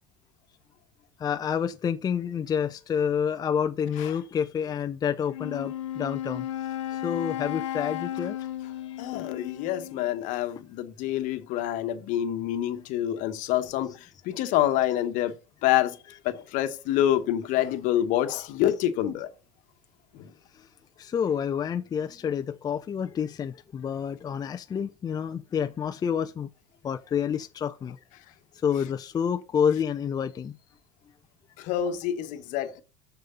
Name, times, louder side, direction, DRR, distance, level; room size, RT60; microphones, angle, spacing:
voice 1, 1.2-6.5 6.9-8.4 21.0-26.5 26.8-28.0 28.6-30.6, left 7 dB, 25° left, 0.5 m, -28 dB
Wind instrument woodwind instrument, 5.3-10.2, left 12 dB, 75° left, 1.0 m, -34 dB
voice 2, 9.0-13.9 14.2-15.3 15.6-16.0 16.2-19.3 31.6-32.8, left 12 dB, 55° left, 1.1 m, -27 dB
6.8 x 6.5 x 5.5 m
hypercardioid pair, 85°, 16 cm